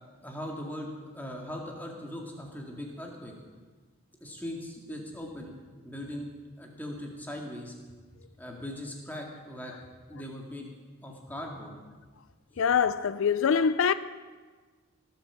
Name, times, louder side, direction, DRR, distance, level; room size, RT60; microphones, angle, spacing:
voice 1, 0.2-0.9 1.1-3.3 4.2-5.6 5.8-6.3 6.6-7.7 8.4-9.7 10.1-10.7 11.0-11.7, left 1 dB, 10° left, 2.1 m, -39 dB
voice 2, 12.6-13.9, left 6 dB, 70° left, 0.4 m, -24 dB
18.5 x 8.2 x 7.2 m
head